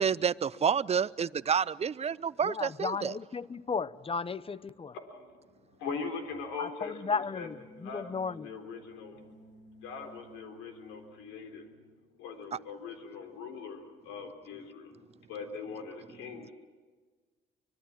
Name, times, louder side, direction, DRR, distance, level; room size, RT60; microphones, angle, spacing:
voice 1, 0.0-3.2, right 7 dB, 30° right, 0.7 m, -29 dB
voice 2, 2.4-4.9 6.6-7.6 7.8-8.5, left 5 dB, 30° left, 0.9 m, -34 dB
voice 3, 4.9-7.5 7.8-9.3 9.8-11.7 12.2-14.9 15.3-16.5, left 5 dB, 80° left, 4.1 m, -41 dB
sound 1, 7.2-12.0, right 1 dB, 65° left, 2.8 m, -55 dB
25.0 x 22.0 x 7.4 m
hypercardioid pair, 65°, 20 cm